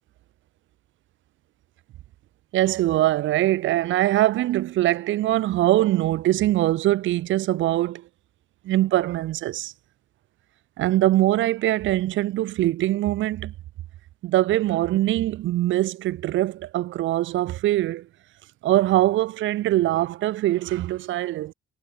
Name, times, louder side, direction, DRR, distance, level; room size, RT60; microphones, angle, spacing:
voice 1, 2.5-8.0 8.6-9.7 10.8-13.5 14.2-18.1 18.6-21.5, right 15 dB, 75° right, 0.6 m, -22 dB
cardioid pair, 90°, 20 cm